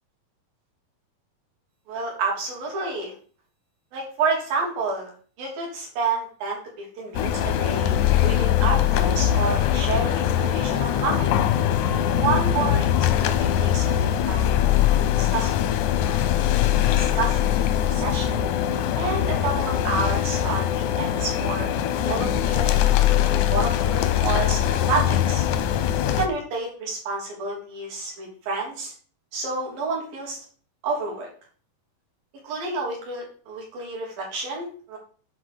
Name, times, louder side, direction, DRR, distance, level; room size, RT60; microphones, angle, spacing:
voice 1, 1.9-3.1 3.9-5.1 5.4-7.9 8.2-11.4 12.1-14.7 15.1-15.7 16.1-16.3 16.9-18.4 19.0-21.7 22.1-22.7 23.2-25.4 26.2-28.9 29.3-30.4 30.8-31.3 32.4-35.0, right 4 dB, 70° right, -2 dB, 4.9 m, -29 dB
sound 1, 7.1-26.3, left 11 dB, 80° left, 1.7 m, -22 dB
9.5 x 4.5 x 6.7 m, 0.42 s
omnidirectional pair, 4.3 m